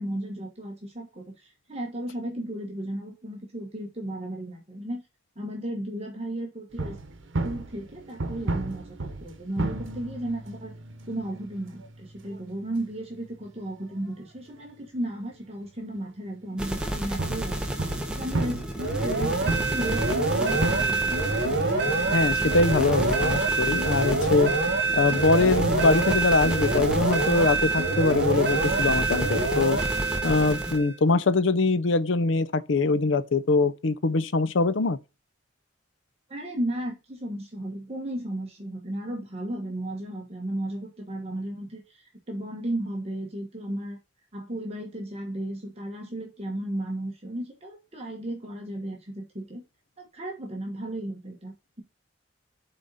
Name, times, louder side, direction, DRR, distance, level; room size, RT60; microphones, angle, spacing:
voice 1, 0.0-5.0 5.3-7.0 7.4-10.7 11.1-21.1 36.3-44.0 44.3-49.6 50.0-51.8, right 1 dB, 35° right, 1.3 m, -34 dB
sound 1, 6.7-14.7 15.0-15.1 16.0-16.1 17.2-23.6, right 2 dB, 85° right, 1.0 m, -35 dB
sound 2, 16.6-30.8, right 1 dB, 5° right, 1.0 m, -32 dB
sound 3, 18.8-30.9, right 3 dB, 60° right, 1.9 m, -26 dB
voice 2, 22.1-24.5 24.9-29.8 30.2-35.0, left 3 dB, 80° left, 0.6 m, -23 dB
8.1 x 4.1 x 4.0 m
head